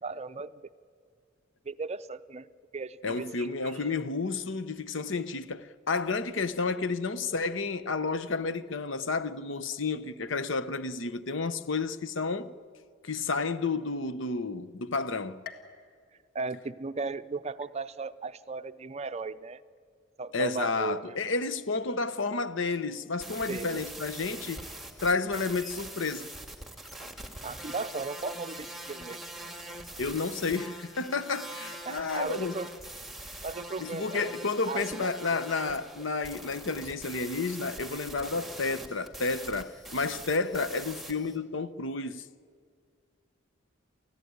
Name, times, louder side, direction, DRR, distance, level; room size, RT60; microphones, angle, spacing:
voice 1, 0.0-0.5 1.7-2.5 2.7-3.8 16.3-19.6 20.2-21.2 23.5-23.9 27.4-29.2 31.9-32.7 33.4-34.3 34.6-35.4, right 3 dB, 35° right, 0.5 m, -36 dB
voice 2, 3.0-12.5 13.0-15.4 20.3-24.7 25.0-26.3 30.0-32.5 33.8-42.2, left 4 dB, 70° left, 0.9 m, -31 dB
sound 1, 15.4-17.2 17.6-18.2 18.7-18.8 19.8-19.9, left 7 dB, 50° left, 1.8 m, -50 dB
sound 2, 22.9-23.0 23.2-41.4, right 1 dB, ahead, 1.9 m, -43 dB
29.5 x 15.0 x 9.5 m
head